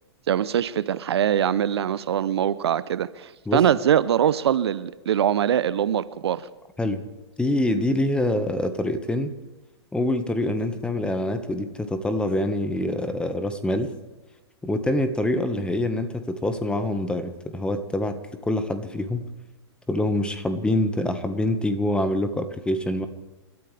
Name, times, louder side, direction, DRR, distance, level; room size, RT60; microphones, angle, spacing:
voice 1, 0.3-6.5, right 9 dB, 70° right, 0.8 m, -23 dB
voice 2, 7.4-9.3 9.9-13.9 14.6-18.2 18.4-19.2 19.9-23.1, left 1 dB, 5° left, 1.5 m, -25 dB
29.0 x 13.5 x 3.5 m
hypercardioid pair, 115°, 14 cm